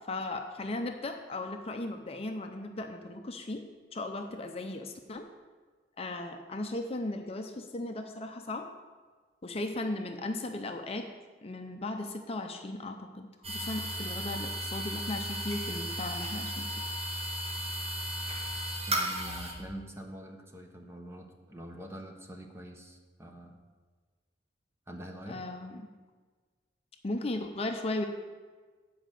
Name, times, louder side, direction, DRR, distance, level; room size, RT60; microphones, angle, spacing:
voice 1, 0.1-3.6 3.9-5.3 6.0-8.7 9.4-11.1 11.4-16.7 25.3-25.9 27.0-28.1, left 2 dB, 35° left, 5 dB, 0.6 m, -36 dB
sound 1, 13.4-19.5, right 1 dB, 35° right, 1.7 m, -35 dB
voice 2, 18.9-23.6 24.9-25.4, right 1 dB, 15° right, 3 dB, 1.0 m, -45 dB
8.5 x 5.0 x 7.6 m, 1.4 s
head